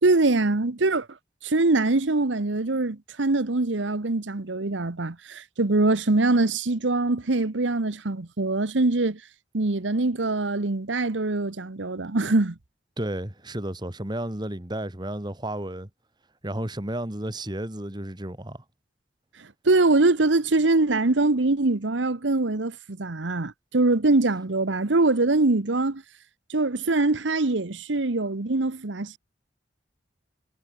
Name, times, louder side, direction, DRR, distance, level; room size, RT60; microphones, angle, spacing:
voice 1, 0.0-1.1 1.4-9.2 9.5-12.6 19.4-26.0 26.5-29.2, right 2 dB, 90° right, 1.2 m, -23 dB
voice 2, 13.0-15.9 16.4-18.6, right 1 dB, 25° right, 2.2 m, -32 dB
head